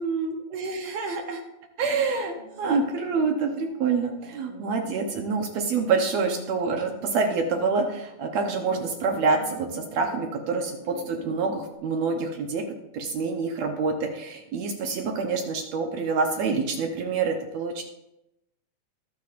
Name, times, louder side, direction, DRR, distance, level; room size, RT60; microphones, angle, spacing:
voice 1, 0.0-1.4 1.8-12.6 12.9-17.8, right 4 dB, 85° right, 3 dB, 1.5 m, -27 dB
sound 1, 2.3-11.8, right 2 dB, 35° right, 3.4 m, -45 dB
22.5 x 8.1 x 2.5 m, 0.89 s
omnidirectional pair, 4.4 m